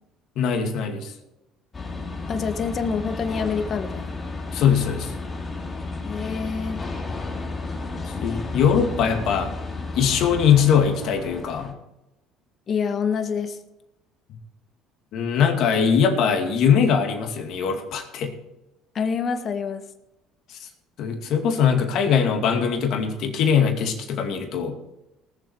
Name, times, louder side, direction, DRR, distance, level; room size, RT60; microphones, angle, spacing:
voice 1, 0.4-1.1 4.5-5.1 8.1-9.5 9.9-11.7 15.1-18.3 20.5-20.7 21.0-24.7, left 7 dB, 65° left, 3 dB, 2.4 m, -21 dB
sound 1, 1.7-11.7, left 3 dB, 30° left, 2.6 m, -33 dB
voice 2, 2.3-4.1 6.0-6.8 12.7-13.6 18.9-19.8, left 6 dB, 45° left, 8 dB, 1.6 m, -26 dB
19.0 x 7.5 x 4.8 m, 0.92 s
supercardioid pair, 80°, 0 cm